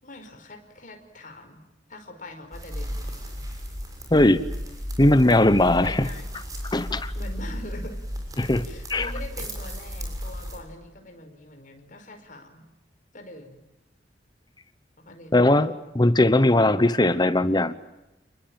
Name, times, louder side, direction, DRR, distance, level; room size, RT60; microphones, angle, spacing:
voice 1, 0.0-1.6 1.9-3.2 4.7-4.8 5.8-6.3 7.1-8.0 8.6-12.7 13.1-13.6 15.0-15.7, left 1 dB, 45° left, 5 dB, 5.1 m, -43 dB
sound 1, 2.5-10.6, equal, 20° right, 6.7 m, -34 dB
voice 2, 4.1-4.4 5.0-6.1 6.7-7.1 8.4-9.1 15.3-17.7, left 1 dB, 25° left, 14 dB, 1.0 m, -19 dB
29.5 x 21.0 x 9.0 m, 0.97 s
head